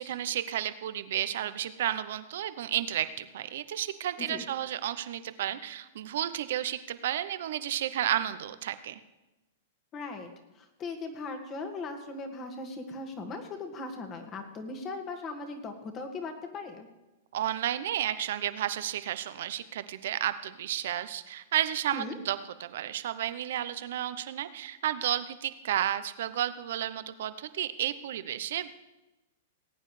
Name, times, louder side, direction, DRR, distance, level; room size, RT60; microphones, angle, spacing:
voice 1, 0.0-9.0 17.3-28.7, right 11 dB, 65° right, 13 dB, 0.7 m, -32 dB
voice 2, 9.9-16.9 21.9-22.2, left 3 dB, 30° left, 5 dB, 1.9 m, -39 dB
19.0 x 9.1 x 3.3 m, 1.0 s
hypercardioid pair, 120°, 0 cm